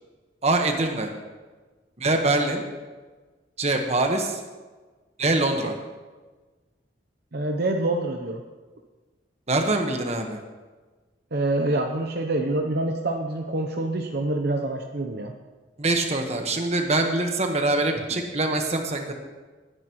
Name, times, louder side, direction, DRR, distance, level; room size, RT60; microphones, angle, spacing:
voice 1, 0.4-1.1 2.0-2.6 3.6-4.4 5.2-5.7 9.5-10.4 15.8-19.1, right 2 dB, 35° right, 4 dB, 1.4 m, -24 dB
voice 2, 7.3-8.4 11.3-15.3, right 2 dB, 55° right, 3 dB, 0.8 m, -26 dB
19.5 x 10.0 x 3.1 m, 1.3 s
head